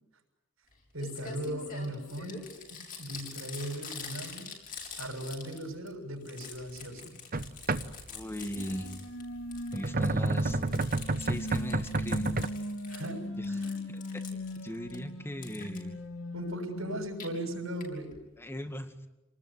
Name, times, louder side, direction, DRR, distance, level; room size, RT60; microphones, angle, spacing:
Crumpling crinkling, 0.7-0.8 1.0-5.9 6.2-9.2 9.5-13.1 13.4-15.0 15.4-15.8 16.9-17.3 17.8-17.9 18.1-18.2 18.4-18.5, left 5 dB, 45° left, 6.6 m, -45 dB
voice 1, 0.9-4.5 5.0-7.2 12.9-13.9 16.3-18.2, right 1 dB, 85° right, 4 dB, 6.6 m, -38 dB
sound 1, 7.3-8.3 9.5-12.5, right 2 dB, 45° right, 1.1 m, -30 dB
voice 2, 8.1-8.9 9.7-10.6 11.2-12.4 13.4-13.5 13.9-16.0 18.4-18.9, equal, 10° left, 7 dB, 2.2 m, -39 dB
sound 2, 8.6-17.1, left 1 dB, 90° left, 2.7 m, -39 dB
28.5 x 20.0 x 9.9 m, 0.98 s
head